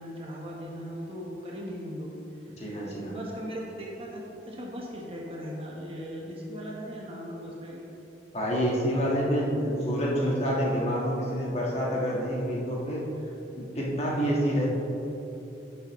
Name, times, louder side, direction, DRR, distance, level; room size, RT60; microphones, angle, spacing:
voice 1, 0.0-2.1 2.6-7.8, equal, 30° right, -3 dB, 1.1 m, -38 dB
voice 2, 2.6-3.1 8.3-13.0 13.5-14.7, equal, 35° left, -4 dB, 1.6 m, -27 dB
11.0 x 6.7 x 3.1 m, 3.0 s
head